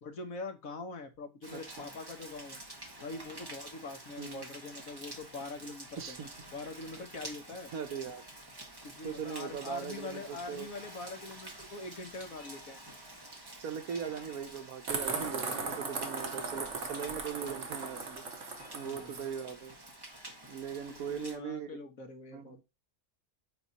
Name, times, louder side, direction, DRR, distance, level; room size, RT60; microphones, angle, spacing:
voice 1, 0.0-2.6 3.0-6.2 6.5-7.7 8.8-12.8 18.7-19.2 20.9-22.6, left 3 dB, 70° left, 1.6 m, -43 dB
Rain, 1.4-21.4, right 1 dB, 15° right, 1.3 m, -49 dB
voice 2, 6.0-6.3 7.7-8.2 9.0-10.7 13.6-19.8 20.5-21.7 22.3-22.6, right 7 dB, 75° right, 1.4 m, -40 dB
sound 1, 14.9-19.3, right 4 dB, 55° right, 1.6 m, -37 dB
8.3 x 3.0 x 4.1 m
omnidirectional pair, 1.5 m